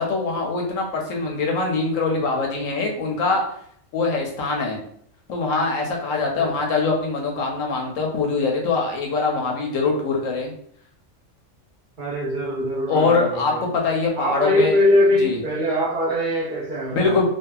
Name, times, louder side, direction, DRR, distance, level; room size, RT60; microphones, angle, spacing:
voice 1, 0.0-3.4 3.9-4.8 5.3-10.5 12.9-14.8 15.2-15.4 16.9-17.2, left 4 dB, 85° left, 1.1 m, -23 dB
voice 2, 12.0-13.6 14.2-17.2, left 1 dB, 50° right, 0.7 m, -22 dB
2.7 x 2.3 x 2.3 m
omnidirectional pair, 1.3 m